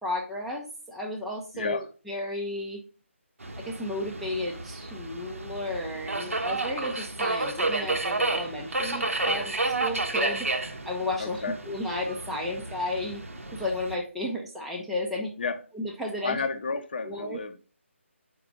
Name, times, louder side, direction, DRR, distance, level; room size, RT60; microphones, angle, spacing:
voice 1, 0.0-2.8 3.6-10.5 10.9-13.2 13.5-15.3 15.7-16.4 17.0-17.4, left 1 dB, ahead, 0.4 m, -33 dB
voice 2, 1.5-1.9 11.2-11.6 15.4-15.6 16.2-17.6, left 4 dB, 45° left, 0.7 m, -31 dB
Subway metro underground, 3.4-14.0, right 2 dB, 90° right, 1.1 m, -31 dB
4.9 x 4.7 x 5.1 m
figure-of-eight pair, 165°, 7 cm